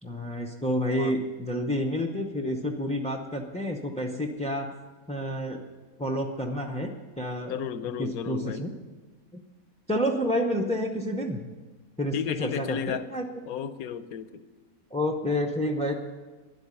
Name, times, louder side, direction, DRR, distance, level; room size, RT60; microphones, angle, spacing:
voice 1, 0.0-4.7 5.1-5.6 6.0-7.6 8.0-8.7 9.3-9.4 9.9-11.4 12.0-12.1 12.4-13.3 14.9-15.9, equal, 10° left, 1 dB, 0.4 m, -29 dB
voice 2, 7.4-8.7 12.1-13.1 13.5-14.4, left 8 dB, 75° left, 12 dB, 1.1 m, -33 dB
10.5 x 8.0 x 9.7 m, 1.3 s
omnidirectional pair, 1.6 m